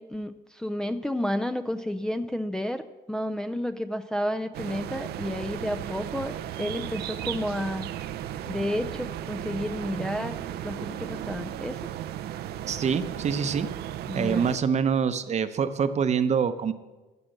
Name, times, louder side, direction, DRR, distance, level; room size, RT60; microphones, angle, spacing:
voice 1, 0.0-2.8 3.1-7.9 8.5-11.8 14.1-14.5, left 1 dB, 5° left, 6 dB, 0.5 m, -31 dB
sound 1, 4.5-14.6, right 11 dB, 70° right, 0.6 m, -35 dB
voice 2, 12.7-13.7 14.1-16.7, right 6 dB, 40° right, 11 dB, 0.9 m, -25 dB
15.0 x 7.5 x 6.6 m, 1.2 s
cardioid pair, 110°, 17 cm